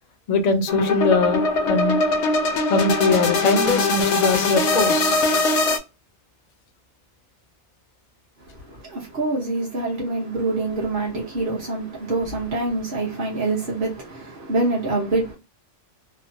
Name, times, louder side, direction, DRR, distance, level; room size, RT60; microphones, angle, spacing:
voice 1, 0.3-2.0 2.7-5.2, left 3 dB, 50° left, 0.5 m, -21 dB
sound 1, 0.7-5.8, left 3 dB, 85° left, 0.9 m, -21 dB
voice 2, 8.4-15.4, right 2 dB, 45° right, 1.1 m, -26 dB
3.0 x 2.1 x 2.5 m
omnidirectional pair, 1.2 m